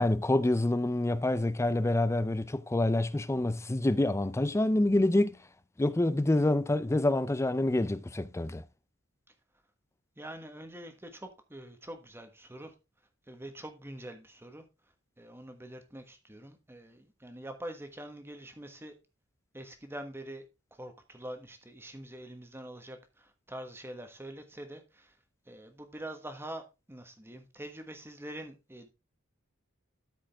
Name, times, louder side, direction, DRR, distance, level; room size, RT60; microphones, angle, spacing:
voice 1, 0.0-5.4 5.8-8.6, left 1 dB, 15° left, 0.4 m, -27 dB
voice 2, 10.2-12.7 13.3-14.6 15.2-18.9 19.5-20.4 20.7-25.1 25.5-28.9, right 1 dB, 10° right, 1.3 m, -45 dB
13.0 x 5.0 x 3.5 m
head